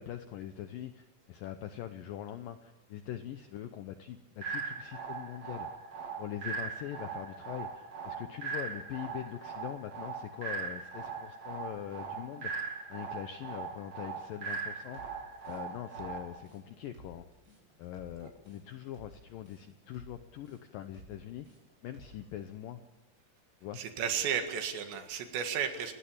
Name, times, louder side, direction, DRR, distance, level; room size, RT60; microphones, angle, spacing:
voice 1, 0.0-5.7 6.2-15.0 15.5-17.3 17.8-21.5 21.8-22.8 23.6-23.8, left 11 dB, 80° left, 9 dB, 2.0 m, -42 dB
sound 1, 4.4-16.4, right 5 dB, 45° right, 3.2 m, -40 dB
sound 2, 14.4-22.3, equal, 25° right, 7.9 m, -56 dB
voice 2, 23.7-25.9, right 8 dB, 75° right, 6 dB, 4.2 m, -33 dB
30.0 x 16.0 x 8.7 m, 1.1 s
omnidirectional pair, 5.1 m